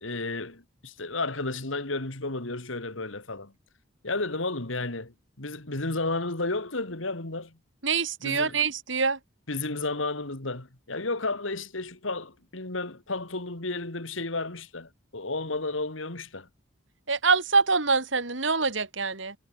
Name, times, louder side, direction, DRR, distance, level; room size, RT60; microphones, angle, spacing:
voice 1, 0.0-3.5 4.0-7.6 8.2-8.6 9.5-16.5, left 2 dB, 80° left, 2.8 m, -32 dB
voice 2, 7.8-9.2 17.1-19.3, right 4 dB, 70° right, 2.9 m, -25 dB
head